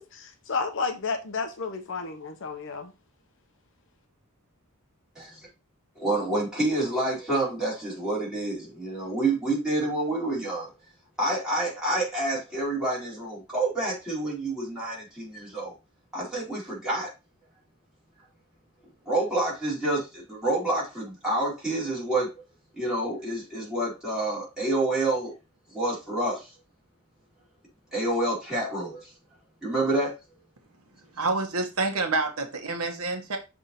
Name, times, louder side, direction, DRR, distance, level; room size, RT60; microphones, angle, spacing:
voice 1, 0.0-2.9, left 4 dB, 60° left, 0.9 m, -32 dB
voice 2, 6.0-10.7 11.2-15.7 16.1-17.1 19.1-22.3 22.7-25.3 25.7-26.5 27.9-29.1 29.6-30.1, right 2 dB, 5° right, 4.0 m, -28 dB
voice 3, 31.2-33.4, right 3 dB, 80° right, 1.2 m, -28 dB
6.7 x 3.5 x 4.3 m
head